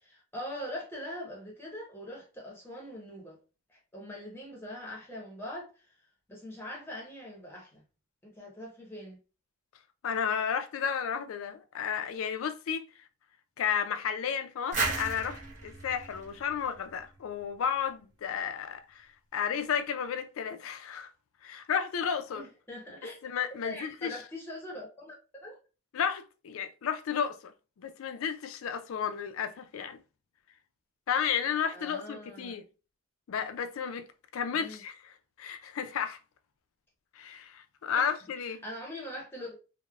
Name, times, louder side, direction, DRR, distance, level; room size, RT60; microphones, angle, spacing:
voice 1, 0.0-3.4 3.7-6.0 6.3-7.8 8.2-9.2 22.3-23.2 23.6-25.6 31.7-32.6 34.5-34.8 37.9-38.1 38.6-39.6, left 1 dB, 10° left, 0.8 m, -42 dB
voice 2, 10.0-12.8 13.6-21.1 21.4-22.4 23.2-24.1 25.9-27.5 27.8-30.0 31.1-32.6 33.3-34.1 34.3-35.1 35.4-36.2 37.2-38.6, left 7 dB, 80° left, 0.4 m, -32 dB
sound 1, 14.7-17.4, right 3 dB, 35° right, 0.8 m, -35 dB
3.1 x 2.1 x 2.3 m
head